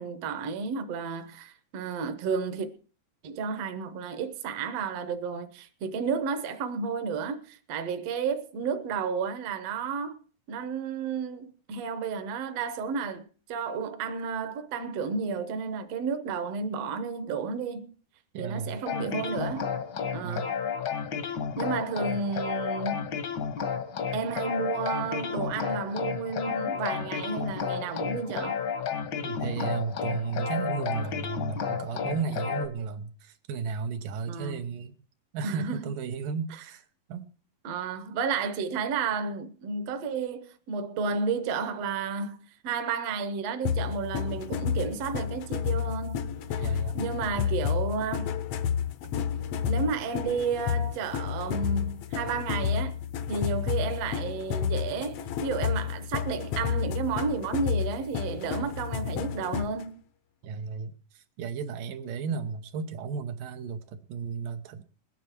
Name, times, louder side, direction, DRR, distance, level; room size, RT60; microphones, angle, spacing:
voice 1, 0.0-2.7 3.2-10.2 10.5-13.2 13.5-17.9 18.4-19.7 20.1-20.6 21.6-23.2 24.1-28.6 34.3-34.7 35.4-35.8 37.6-46.3 46.5-46.7 46.9-48.3 49.6-53.0 53.3-59.9, right 5 dB, 60° right, 1.9 m, -32 dB
voice 2, 18.3-18.8 20.2-20.5 29.2-35.0 35.3-36.8 37.1-37.3 46.6-47.0 60.4-64.8, right 6 dB, 85° right, 2.7 m, -34 dB
sound 1, 18.9-32.7, left 7 dB, 65° left, 1.1 m, -32 dB
sound 2, 43.6-59.8, left 8 dB, 80° left, 1.3 m, -31 dB
21.0 x 9.1 x 4.5 m
omnidirectional pair, 3.8 m